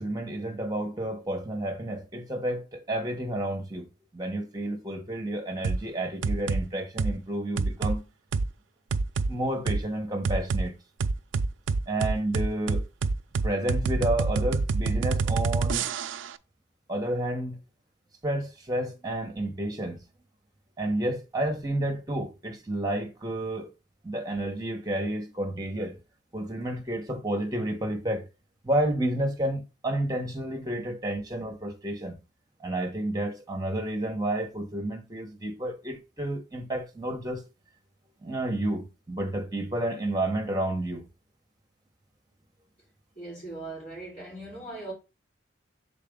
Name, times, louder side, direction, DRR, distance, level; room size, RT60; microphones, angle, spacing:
voice 1, 0.0-3.9 4.1-8.0 9.3-10.7 11.9-12.8 13.4-15.9 16.9-17.6 18.2-20.0 20.8-23.7 24.0-26.0 26.3-28.3 28.6-32.2 32.6-37.5 38.2-41.1, right 1 dB, 20° right, 1.2 m, -30 dB
sound 1, 5.6-5.8 6.2-6.6 7.0-7.2 7.6-8.0 8.3-8.5 8.9-9.3 9.7-9.8 10.2-10.6 11.0-16.3, right 4 dB, 80° right, 0.4 m, -26 dB
voice 2, 43.2-44.9, right 2 dB, 35° left, 3.6 m, -39 dB
6.6 x 4.0 x 3.8 m
head